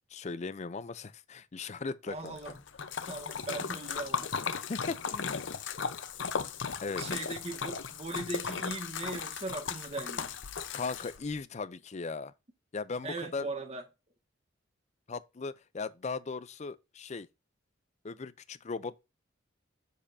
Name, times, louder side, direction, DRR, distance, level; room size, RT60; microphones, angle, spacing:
voice 1, 0.1-2.4 4.7-5.5 6.8-7.2 10.7-12.3 12.7-13.5 15.1-17.3 18.0-19.0, left 4 dB, 35° left, 0.5 m, -38 dB
voice 2, 2.1-2.6 3.1-4.3 7.0-10.3 13.0-13.8, right 2 dB, 35° right, 1.6 m, -39 dB
Splash splatter, 2.3-11.4, left 6 dB, 70° left, 0.7 m, -36 dB
7.5 x 6.6 x 2.6 m
head